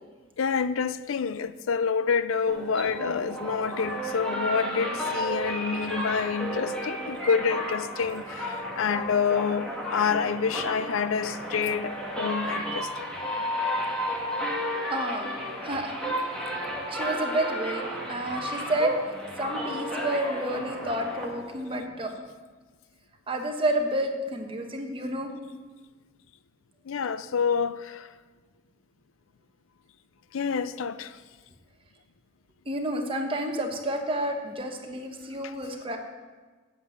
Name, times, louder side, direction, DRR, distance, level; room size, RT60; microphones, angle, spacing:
voice 1, 0.4-13.1 26.9-28.1 30.3-31.1 35.4-35.5, left 6 dB, 90° left, 0.5 m, -28 dB
sound 1, 2.5-21.8, equal, 5° left, 1.5 m, -33 dB
voice 2, 14.9-16.0 16.9-19.0 19.4-22.2 23.3-25.3 32.7-36.0, right 1 dB, 25° right, 1.2 m, -30 dB
8.3 x 8.1 x 8.0 m
head